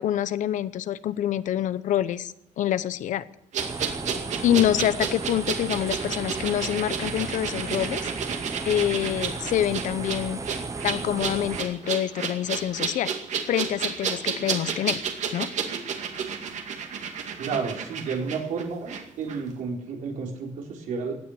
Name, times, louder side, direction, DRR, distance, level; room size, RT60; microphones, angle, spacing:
voice 1, 0.0-3.2 4.4-8.0 8.6-10.4 10.8-13.1 13.5-15.0 15.3-15.5, left 11 dB, 80° left, 16 dB, 0.8 m, -26 dB
sound 1, 3.5-19.0 19.3-19.4, right 6 dB, 65° right, 2.3 m, -31 dB
sound 2, 3.6-11.6, right 4 dB, 25° right, 1.0 m, -35 dB
voice 2, 4.5-4.8 17.4-21.2, right 5 dB, 90° right, 1 dB, 4.1 m, -31 dB
16.5 x 9.8 x 7.9 m, 0.85 s
cardioid pair, 145°, 13 cm